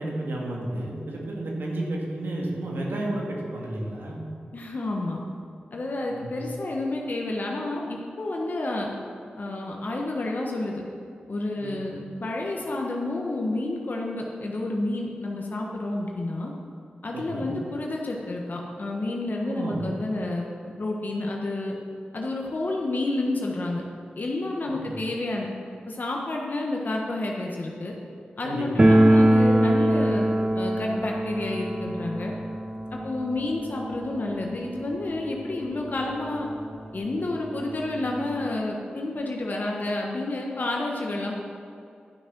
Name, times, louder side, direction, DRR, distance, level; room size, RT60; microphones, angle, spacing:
voice 1, 0.0-4.2 6.1-6.3 11.6-11.8 17.1-17.5 19.5-19.8 24.8-24.9 28.4-28.8, right 1 dB, 80° right, -2 dB, 2.0 m, -32 dB
voice 2, 4.5-5.2 5.7-8.9 9.4-10.8 11.3-16.5 17.0-20.5 20.8-21.7 22.1-23.8 24.2-25.5 25.9-27.9 28.4-30.3 30.5-32.3 32.9-36.5 36.9-41.4, left 2 dB, 55° left, -1 dB, 1.2 m, -30 dB
sound 1, 28.8-35.5 35.8-35.9 36.1-36.2 37.0-37.1 37.3-38.5, right 1 dB, 25° right, 0.8 m, -23 dB
11.5 x 6.1 x 6.1 m, 2.5 s
cardioid pair, 50°, 4 cm